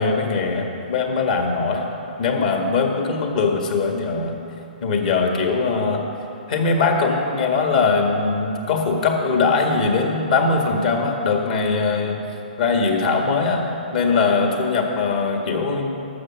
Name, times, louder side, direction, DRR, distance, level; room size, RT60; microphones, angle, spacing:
voice 1, 0.0-1.9 2.2-4.4 4.8-6.0 6.5-12.2 12.6-15.9, left 4 dB, 60° left, 2 dB, 1.7 m, -21 dB
12.0 x 7.4 x 6.2 m, 2.8 s
hypercardioid pair, 130°, 5 cm